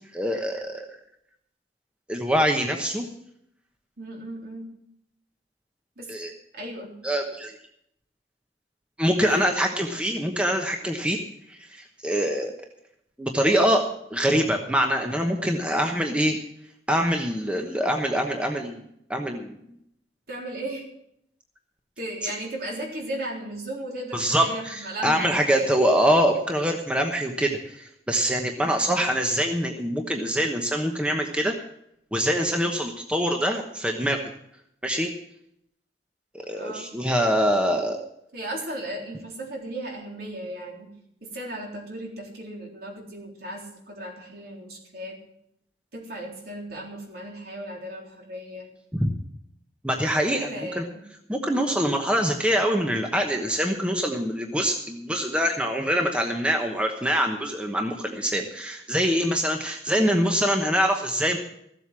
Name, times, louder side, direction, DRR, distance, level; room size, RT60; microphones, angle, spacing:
voice 1, 0.1-1.0 2.1-3.1 6.1-6.3 7.0-7.5 9.0-11.2 11.5-12.5 13.2-13.8 14.1-16.4 16.9-18.8 19.1-19.6 24.1-31.5 32.1-34.2 34.8-35.1 36.3-38.0 48.9-49.1 49.8-50.9 51.3-61.4, equal, 5° right, 3 dB, 1.1 m, -24 dB
voice 2, 4.0-4.7 6.0-6.1 6.5-7.0 9.3-9.5 20.3-20.9 22.0-25.7 28.6-29.1 36.5-36.9 38.3-40.9 41.2-45.2 45.9-48.7 50.4-51.0, right 1 dB, 60° right, 0 dB, 3.8 m, -36 dB
15.0 x 8.0 x 7.4 m, 0.73 s
head